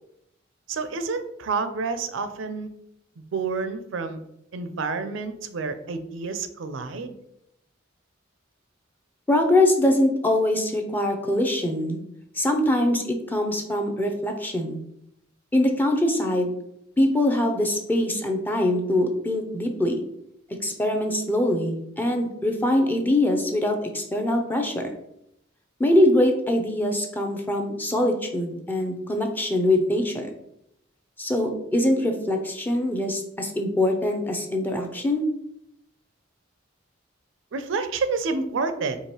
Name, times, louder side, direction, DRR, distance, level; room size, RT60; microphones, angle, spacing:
voice 1, 0.7-2.7 3.3-4.2 4.5-7.1 37.5-39.0, right 4 dB, 75° right, 9 dB, 0.4 m, -29 dB
voice 2, 9.3-12.0 12.4-14.8 15.5-16.5 17.0-20.0 20.6-24.9 25.8-30.3 31.2-35.2, left 1 dB, 10° left, 3 dB, 0.5 m, -23 dB
4.6 x 2.9 x 2.9 m, 0.76 s
head